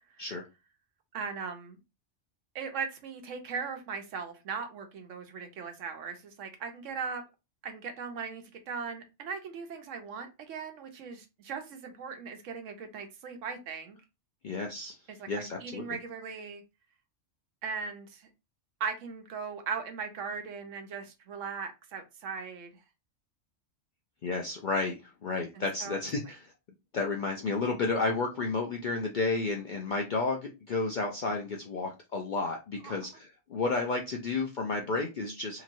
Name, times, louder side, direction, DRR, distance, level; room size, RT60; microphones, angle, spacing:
voice 1, 1.1-1.8 2.5-7.2 7.6-14.0 15.1-16.6 17.6-18.3 18.8-22.7 25.5-26.0 32.8-32.9, right 5 dB, 90° right, 1.1 m, -38 dB
voice 2, 14.4-14.9 15.3-15.8 24.2-26.5 26.9-35.6, left 3 dB, 60° left, 0.5 m, -32 dB
2.9 x 2.9 x 2.5 m
omnidirectional pair, 1.3 m